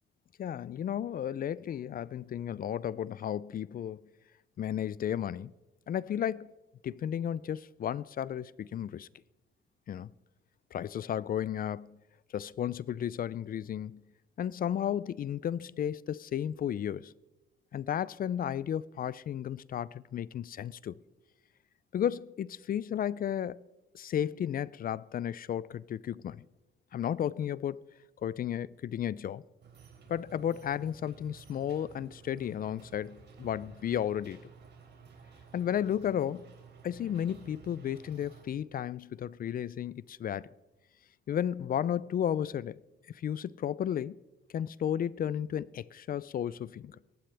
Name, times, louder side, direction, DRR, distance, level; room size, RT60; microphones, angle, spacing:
voice 1, 0.4-4.0 4.6-5.5 5.9-6.5 6.8-9.1 9.9-10.1 10.7-12.0 12.3-14.0 14.4-17.1 17.7-21.0 21.9-23.6 23.9-26.4 26.9-27.8 28.2-29.4 30.1-34.4 35.5-36.5 36.8-40.5 41.3-42.8 43.1-44.2 44.5-47.0, left 9 dB, 45° left, 0.4 m, -33 dB
sound 1, 29.6-38.4, right 6 dB, 60° right, 3.2 m, -54 dB
23.5 x 11.5 x 3.4 m
cardioid pair, 90°, 20 cm